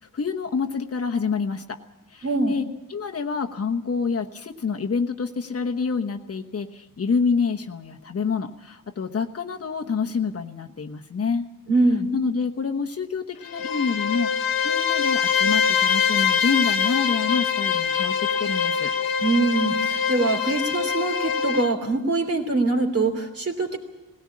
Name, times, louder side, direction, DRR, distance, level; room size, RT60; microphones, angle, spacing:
voice 1, 0.1-1.8 2.1-2.6 2.9-11.5 12.1-18.9, left 5 dB, 40° left, 4 dB, 1.2 m, -27 dB
voice 2, 2.2-2.5 11.7-12.1 19.2-23.8, right 2 dB, 40° right, 4 dB, 3.0 m, -23 dB
Bowed string instrument, 13.4-21.7, left 7 dB, 70° left, 1.1 m, -24 dB
19.0 x 17.5 x 8.6 m, 1.0 s
wide cardioid pair, 110°, 36 cm